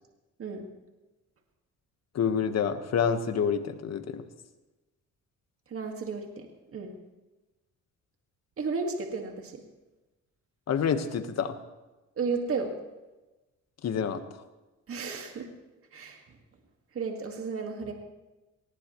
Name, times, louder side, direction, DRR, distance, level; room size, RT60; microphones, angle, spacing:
voice 1, 2.1-4.2 10.7-11.6 13.8-14.2, left 7 dB, 60° left, 8 dB, 1.5 m, -27 dB
voice 2, 5.7-6.5 6.7-6.9 8.6-9.6 12.2-12.7 14.9-15.5 15.9-16.2 16.9-17.9, right 4 dB, 45° right, 3 dB, 2.0 m, -33 dB
20.5 x 19.0 x 3.2 m, 1.1 s
cardioid pair, 90°, 30 cm